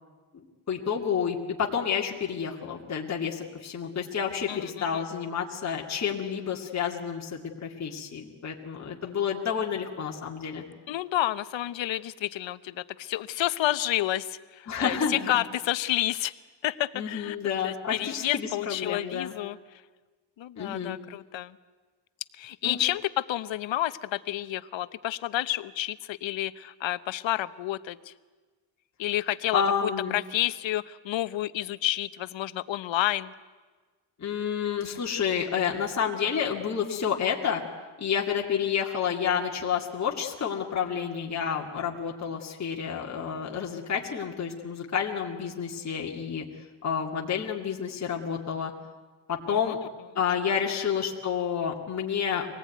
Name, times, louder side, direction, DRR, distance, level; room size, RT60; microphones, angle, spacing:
voice 1, 0.3-10.6 14.7-15.4 16.9-19.3 20.6-21.0 22.6-22.8 29.5-30.2 34.2-37.6 38.0-46.4 46.8-48.7 49.3-49.8 50.2-52.5, left 7 dB, 35° left, -1 dB, 2.3 m, -30 dB
voice 2, 10.9-16.3 16.6-17.4 17.6-19.6 20.4-21.5 22.4-28.1 29.0-33.3 49.5-49.7, left 14 dB, 65° left, 14 dB, 1.0 m, -30 dB
25.0 x 19.0 x 9.4 m, 1.4 s
cardioid pair, 135°, 49 cm